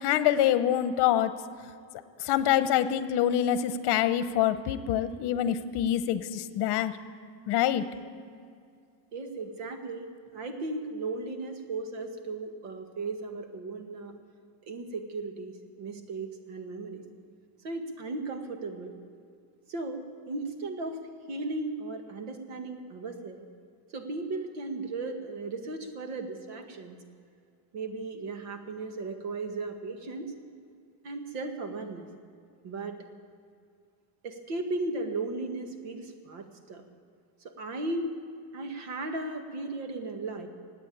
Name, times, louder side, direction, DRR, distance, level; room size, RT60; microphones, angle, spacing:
voice 1, 0.0-1.3 2.2-6.9 7.5-7.8, left 11 dB, 55° left, 12 dB, 0.9 m, -25 dB
voice 2, 9.1-10.1 10.3-14.1 14.7-17.0 17.6-18.9 19.7-21.0 21.3-23.5 23.9-27.0 27.7-30.3 31.0-32.1 32.6-33.0 34.2-36.8 37.4-38.2 38.5-40.5, right 3 dB, 85° right, 6 dB, 1.9 m, -36 dB
17.0 x 9.0 x 8.7 m, 2.3 s
cardioid pair, 160°, 49 cm